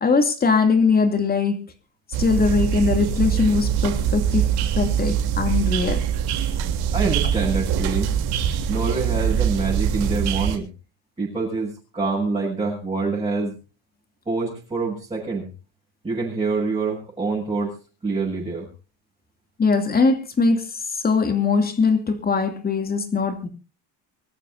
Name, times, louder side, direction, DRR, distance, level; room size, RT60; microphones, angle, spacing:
voice 1, 0.0-1.6 2.2-4.5 4.8-6.0 19.6-23.5, left 4 dB, 25° left, 7 dB, 2.7 m, -21 dB
sound 1, 2.1-10.6, right 9 dB, 75° right, 3.4 m, -23 dB
voice 2, 6.9-8.1 8.7-10.7 11.2-13.5 14.3-15.5 16.0-17.7 18.0-18.7, right 4 dB, 15° right, -5 dB, 7.0 m, -25 dB
25.5 x 14.0 x 2.7 m, 0.34 s
cardioid pair, 145°, 38 cm